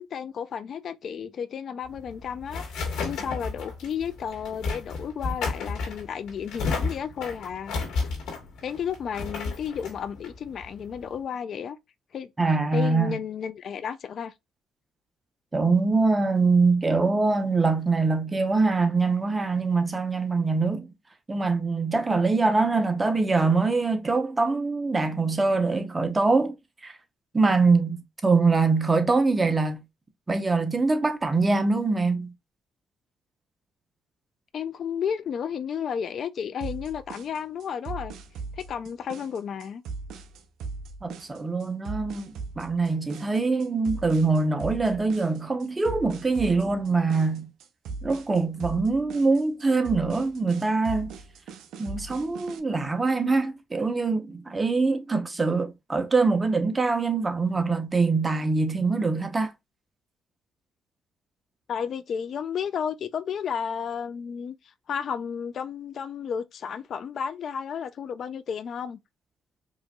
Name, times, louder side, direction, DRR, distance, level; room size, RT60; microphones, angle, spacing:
voice 1, 0.0-7.8 8.6-11.8 12.1-12.3 12.7-14.3 34.5-38.1 38.6-39.8 61.7-64.5 64.9-69.0, left 7 dB, 60° left, 0.4 m, -32 dB
sound 1, 1.9-11.2, left 4 dB, 85° left, 2.1 m, -33 dB
voice 2, 12.4-13.2 15.5-20.9 21.3-26.6 26.8-27.0 27.3-29.8 30.3-32.3 41.0-47.5 48.0-51.1 51.8-59.5, right 3 dB, 25° right, 0.8 m, -24 dB
sound 2, 36.6-52.6, right 4 dB, 80° right, 0.5 m, -39 dB
4.8 x 2.6 x 2.2 m
cardioid pair, 90°, 0 cm